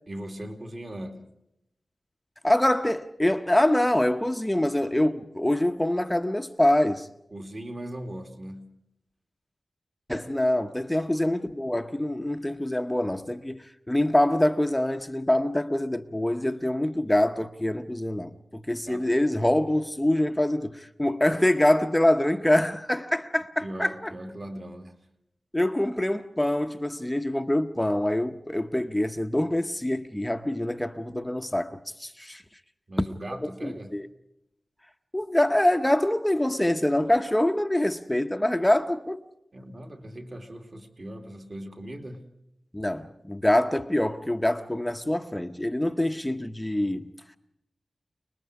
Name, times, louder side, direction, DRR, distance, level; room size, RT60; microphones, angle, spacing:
voice 1, 0.1-1.3 7.3-8.7 10.9-11.0 18.9-19.1 23.6-25.0 32.9-33.9 39.5-42.3, right 1 dB, 40° right, 2.5 m, -39 dB
voice 2, 2.4-7.1 10.1-24.1 25.5-32.4 33.6-34.1 35.1-39.2 42.7-47.1, left 1 dB, 10° left, 0.8 m, -25 dB
29.5 x 20.5 x 4.9 m
wide cardioid pair, 105°, 0 cm